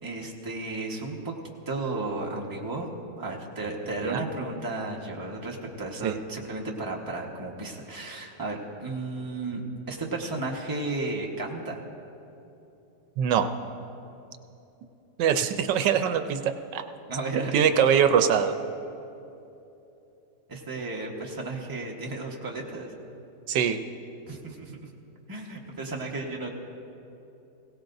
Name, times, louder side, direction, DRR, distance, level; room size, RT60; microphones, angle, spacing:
voice 1, 0.0-1.3 1.7-9.6 9.9-11.8 17.1-17.7 20.5-22.9 24.3-24.9 25.3-26.5, right 2 dB, 15° right, -1 dB, 1.1 m, -34 dB
voice 2, 13.2-13.5 15.2-16.8 17.5-18.5 23.5-23.8, right 8 dB, 80° right, 8 dB, 1.3 m, -23 dB
21.5 x 17.0 x 2.6 m, 2.9 s
omnidirectional pair, 1.9 m